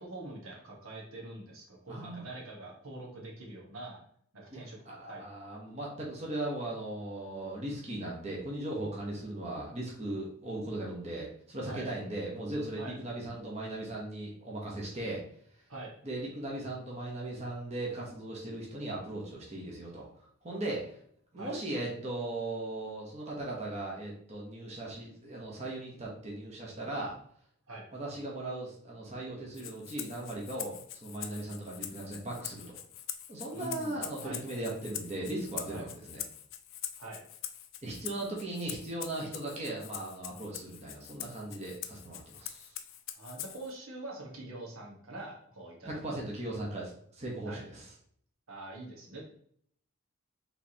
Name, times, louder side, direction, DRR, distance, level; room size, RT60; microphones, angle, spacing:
voice 1, 0.0-4.0 4.3-4.8 5.1-5.2 11.7-11.9 12.8-12.9 15.7-15.9 21.4-21.5 27.7-27.8 33.5-34.4 35.7-35.9 37.0-37.2 43.2-46.0 47.4-47.6 48.5-49.2, right 2 dB, 80° right, -2 dB, 1.4 m, -44 dB
voice 2, 1.9-2.2 4.5-15.2 16.0-20.1 20.4-20.8 21.3-27.1 27.9-32.8 33.3-36.2 37.8-42.8 45.8-47.9, right 1 dB, 30° right, -3 dB, 1.0 m, -38 dB
Rattle (instrument), 29.5-43.7, left 11 dB, 65° left, 0.4 m, -44 dB
4.6 x 3.5 x 2.9 m, 0.63 s
head